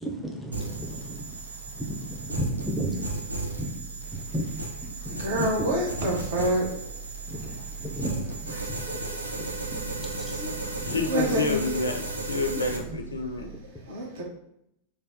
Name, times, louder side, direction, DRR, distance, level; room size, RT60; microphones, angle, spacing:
voice 1, 0.0-5.7 7.3-9.0 9.4-11.0 12.8-12.9, right 1 dB, 5° left, 0 dB, 0.5 m, -35 dB
sound 1, 0.5-12.8, right 2 dB, 80° right, 0.4 m, -35 dB
sound 2, 0.7-13.6, right 7 dB, 20° right, 1.3 m, -42 dB
voice 2, 5.0-7.6 7.9-8.0 8.5-9.5 10.3-11.9 13.4-14.2, right 1 dB, 55° right, -1 dB, 0.9 m, -30 dB
voice 3, 10.8-12.0 12.3-13.5, left 4 dB, 75° left, 4 dB, 0.4 m, -29 dB
3.3 x 2.2 x 2.6 m, 0.77 s
figure-of-eight pair, 90°, 0 cm